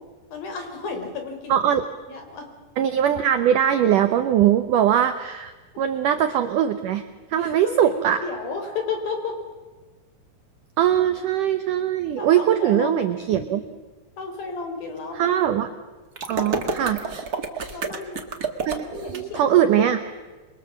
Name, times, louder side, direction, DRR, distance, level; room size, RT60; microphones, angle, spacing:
voice 1, 0.3-1.6 2.1-2.5 7.4-9.4 12.2-13.6 14.2-15.4 17.7-18.3 18.9-19.9, left 4 dB, 60° left, 4 dB, 5.6 m, -32 dB
voice 2, 1.5-1.8 2.8-8.3 10.8-13.6 15.1-15.7 16.3-17.0 18.7-20.0, right 10 dB, 70° right, 8 dB, 2.1 m, -21 dB
sound 1, 16.2-19.2, right 4 dB, 45° right, 1.2 m, -29 dB
28.0 x 22.5 x 7.3 m, 1.3 s
omnidirectional pair, 4.7 m